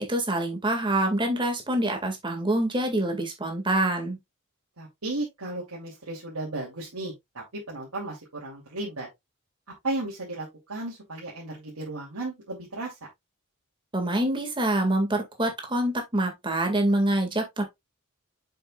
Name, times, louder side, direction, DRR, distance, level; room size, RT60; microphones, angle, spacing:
voice 1, 0.0-4.2 13.9-17.6, right 1 dB, 20° right, 1.9 m, -26 dB
voice 2, 4.8-9.1 9.8-12.9, right 2 dB, 90° right, 2.7 m, -34 dB
7.1 x 6.6 x 2.3 m
head